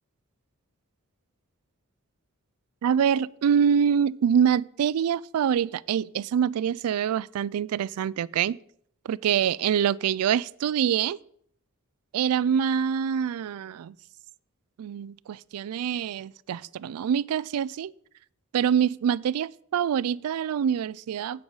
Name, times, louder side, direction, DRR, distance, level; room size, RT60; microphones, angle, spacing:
voice 1, 2.8-8.6 9.1-11.2 12.1-13.9 14.8-17.9 18.5-21.4, right 8 dB, 85° right, 0.3 m, -25 dB
10.5 x 8.6 x 4.0 m
head